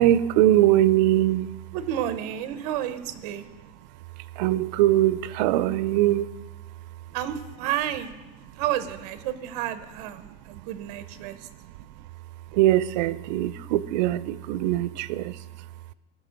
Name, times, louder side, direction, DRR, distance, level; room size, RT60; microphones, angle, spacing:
voice 1, 0.0-1.7 3.4-3.5 3.8-7.2 8.5-8.6 10.2-15.9, right 14 dB, 90° right, 18 dB, 0.5 m, -24 dB
voice 2, 1.7-3.5 7.1-8.2 8.6-11.5, right 11 dB, 65° right, 12 dB, 1.0 m, -31 dB
18.0 x 6.4 x 5.2 m, 1.1 s
cardioid pair, 175°, 21 cm